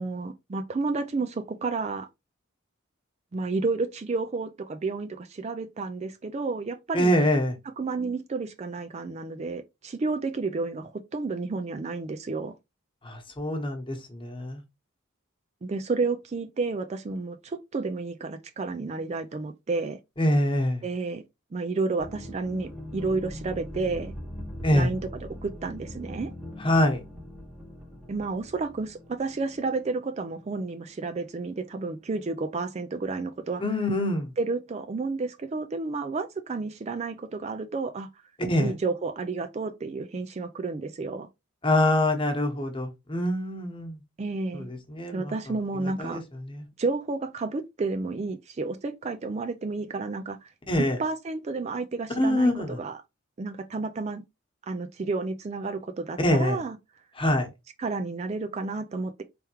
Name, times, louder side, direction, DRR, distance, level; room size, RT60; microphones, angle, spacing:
voice 1, 0.0-2.1 3.3-7.1 7.8-12.5 15.6-20.0 20.8-21.2 21.5-24.1 24.7-26.3 28.1-33.6 34.4-38.1 38.6-41.3 44.2-44.7 45.1-46.2 46.8-50.5 51.0-53.0 53.4-54.2 54.6-56.8 57.8-59.2, right 3 dB, 30° right, 0.4 m, -31 dB
voice 2, 6.9-7.5 13.0-14.6 20.2-20.8 24.6-24.9 26.6-27.0 33.6-34.3 38.4-38.7 41.6-44.0 44.5-45.3 46.0-46.2 46.5-46.6 50.7-51.0 52.2-52.8 56.2-56.6 57.2-57.5, left 1 dB, 25° left, 1.1 m, -24 dB
sound 1, 22.0-31.3 31.6-31.7, equal, 5° right, 0.9 m, -41 dB
4.5 x 3.5 x 3.0 m
head